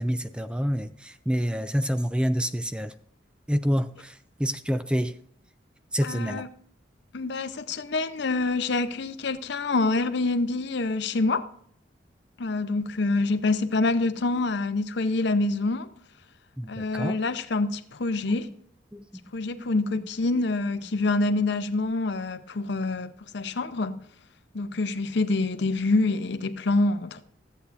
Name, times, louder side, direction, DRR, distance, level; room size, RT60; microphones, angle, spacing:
voice 1, 0.0-2.9 3.5-5.1 5.9-6.4 16.6-17.2 18.3-18.4 18.9-19.1 19.5-20.0, equal, 5° right, 0.3 m, -28 dB
voice 2, 6.0-6.5 7.1-11.5 12.4-15.9 16.7-18.5 19.3-24.0 24.5-27.2, left 3 dB, 65° left, 0.7 m, -26 dB
14.5 x 8.2 x 2.5 m
head